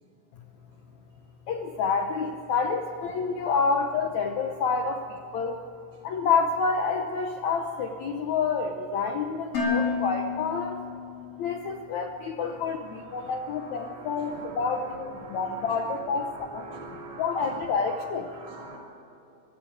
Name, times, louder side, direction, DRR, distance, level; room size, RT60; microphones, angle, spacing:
voice 1, 1.5-5.6 6.0-10.8 11.4-16.7 17.2-18.4, left 5 dB, 75° left, 4 dB, 1.7 m, -28 dB
Dishes pots and pans, 9.5-11.6, left 5 dB, 40° left, 5.2 m, -30 dB
voice 2, 12.5-17.6 17.9-18.8, right 3 dB, 50° right, -5 dB, 4.3 m, -44 dB
24.0 x 13.5 x 8.8 m, 3.0 s
omnidirectional pair, 4.5 m